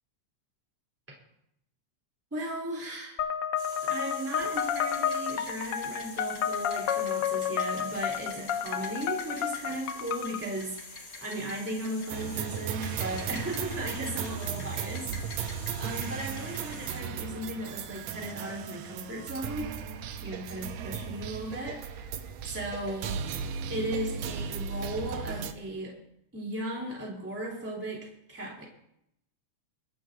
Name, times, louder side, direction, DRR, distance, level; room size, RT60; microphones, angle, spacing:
voice 1, 2.3-3.2 3.8-19.7 20.2-22.1 22.4-23.2 23.7-26.0 26.3-28.7, right 1 dB, 5° right, -3 dB, 3.0 m, -36 dB
sound 1, 3.2-10.4, left 8 dB, 65° left, 1.5 m, -31 dB
sound 2, 3.6-17.0, left 3 dB, 35° left, 2.0 m, -45 dB
sound 3, 12.1-25.5, right 7 dB, 75° right, 1.9 m, -36 dB
23.0 x 11.0 x 2.7 m, 0.77 s
omnidirectional pair, 3.3 m